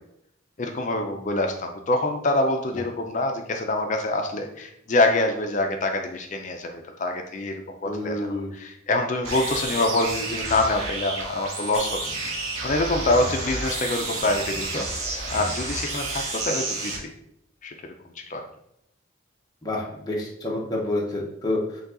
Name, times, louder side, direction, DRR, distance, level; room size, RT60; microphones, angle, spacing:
voice 1, 0.6-7.5 7.8-12.0 12.3-14.9 15.3-17.1 17.6-17.7 18.3-18.4, left 2 dB, 35° left, 4 dB, 0.4 m, -25 dB
voice 2, 7.8-8.5 19.6-21.8, left 1 dB, 20° left, -4 dB, 0.8 m, -28 dB
sound 1, 9.2-17.0, right 2 dB, 80° right, 1.0 m, -30 dB
5.3 x 2.3 x 3.7 m, 0.76 s
head